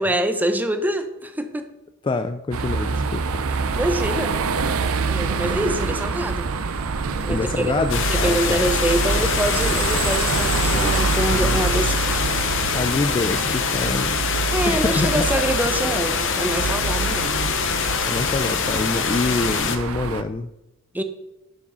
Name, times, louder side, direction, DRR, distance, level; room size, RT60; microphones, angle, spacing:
voice 1, 0.0-1.7 3.7-4.3 5.1-6.5 7.2-7.7 8.1-12.4 14.5-17.5 18.9-19.1 20.9-21.0, right 1 dB, 10° right, 8 dB, 0.7 m, -25 dB
voice 2, 2.0-3.4 7.3-8.6 12.7-14.1 14.7-15.3 18.1-20.5, left 3 dB, 20° left, 9 dB, 0.3 m, -25 dB
sound 1, 2.5-20.2, right 4 dB, 70° right, 0.6 m, -26 dB
sound 2, 7.9-19.8, left 6 dB, 60° left, 0.9 m, -24 dB
10.5 x 5.1 x 5.5 m, 0.97 s
head